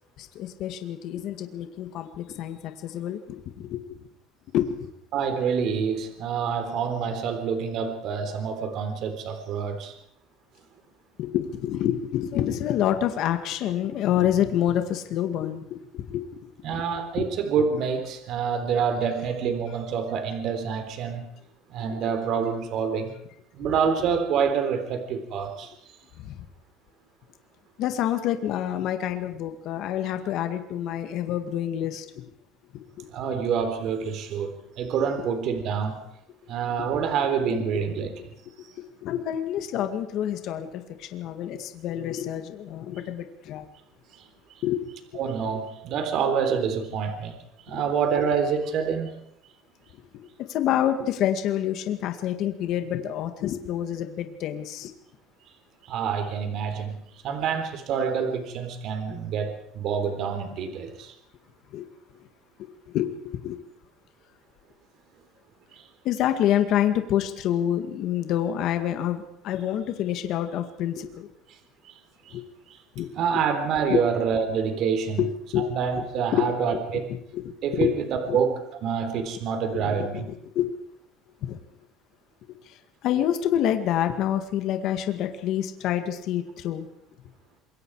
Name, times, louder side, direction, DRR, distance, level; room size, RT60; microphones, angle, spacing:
voice 1, 0.2-4.0 4.5-4.9 11.2-16.8 17.2-17.3 26.2-26.4 27.8-32.2 33.0-33.1 35.2-35.3 36.8-36.9 37.5-37.7 38.6-43.7 44.6-45.2 47.7-47.8 50.5-54.9 60.7-60.8 61.7-61.9 62.2-62.3 62.6-63.6 66.0-71.3 72.3-72.5 73.0-73.4 73.9-74.0 75.2-75.7 76.3-76.5 76.7-78.0 78.2-78.4 79.7-80.7 81.4-81.6 82.7-86.9, left 11 dB, 60° left, 7 dB, 2.0 m, -28 dB
voice 2, 5.1-9.9 16.6-21.3 21.7-23.1 23.5-25.9 33.1-36.0 36.5-38.2 44.1-44.2 45.1-47.4 47.7-49.1 55.8-57.0 57.2-61.1 65.7-65.8 72.3-72.4 73.2-75.2 75.6-77.1 77.6-80.3, right 6 dB, 55° right, 7 dB, 3.8 m, -27 dB
27.0 x 22.5 x 4.9 m, 0.73 s
cardioid pair, 135°, 0 cm